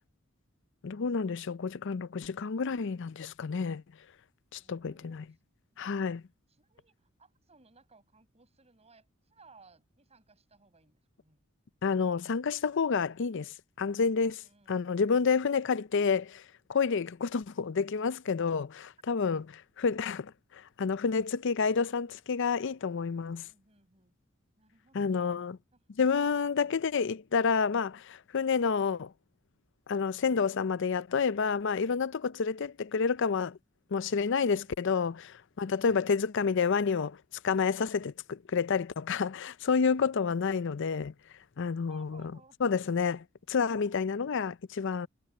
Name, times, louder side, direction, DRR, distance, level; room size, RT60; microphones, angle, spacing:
voice 1, 0.8-3.8 4.5-5.2 5.8-6.2 11.8-14.4 14.7-16.4 16.7-23.5 24.9-25.6 26.0-29.1 29.9-33.6 33.9-37.2 37.4-41.1 41.6-42.3 42.6-45.1, left 5 dB, 60° left, 0.5 m, -29 dB
voice 2, 4.6-5.3 5.7-6.2 6.5-11.4 14.4-14.8 15.3-15.9 23.4-24.2 24.6-25.3 25.7-25.8 26.7-26.8 32.3-32.6 34.6-35.3 35.8-36.0 41.9-42.6, right 3 dB, 30° right, 7.9 m, -62 dB
head